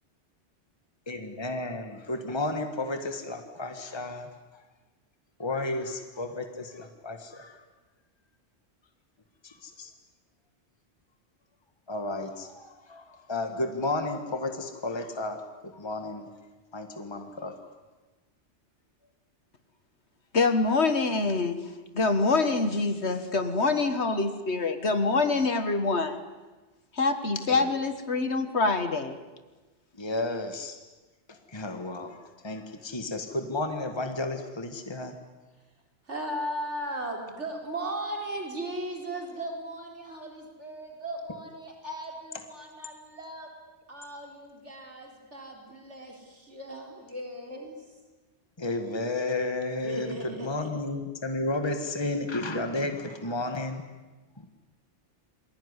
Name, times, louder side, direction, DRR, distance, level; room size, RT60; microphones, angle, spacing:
voice 1, 1.1-4.3 4.5-4.6 5.4-7.6 9.4-9.9 11.9-16.3 16.7-17.6 27.5-27.7 29.9-30.8 31.3-35.1 48.6-53.8 54.4-54.5, left 2 dB, 25° left, 6 dB, 1.7 m, -33 dB
voice 2, 20.3-21.6 21.9-26.2 26.9-29.2, left 3 dB, 75° left, 9 dB, 1.8 m, -25 dB
voice 3, 36.1-43.5 43.9-47.8 49.8-50.7, right 1 dB, 85° right, 2 dB, 4.7 m, -37 dB
28.0 x 21.5 x 9.8 m, 1.2 s
omnidirectional pair, 1.2 m